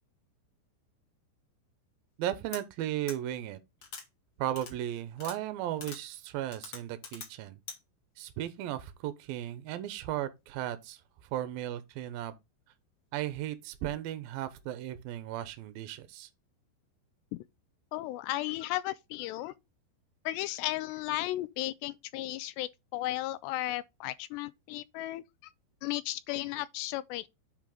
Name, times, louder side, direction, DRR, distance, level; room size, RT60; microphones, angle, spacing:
voice 1, 2.2-3.6 4.4-7.6 8.2-11.0 11.3-12.3 13.1-16.3, right 12 dB, 75° right, 2.3 m, -36 dB
sound 1, 2.5-2.6 3.1-3.2 3.8-4.0 4.6-4.7 5.2-5.4 5.8-6.0 6.5-7.3 7.7-7.8, left 5 dB, 40° left, 1.8 m, -43 dB
voice 2, 17.9-19.5 20.3-25.2 25.8-27.3, left 16 dB, 85° left, 2.5 m, -35 dB
10.5 x 4.8 x 3.8 m
omnidirectional pair, 5.2 m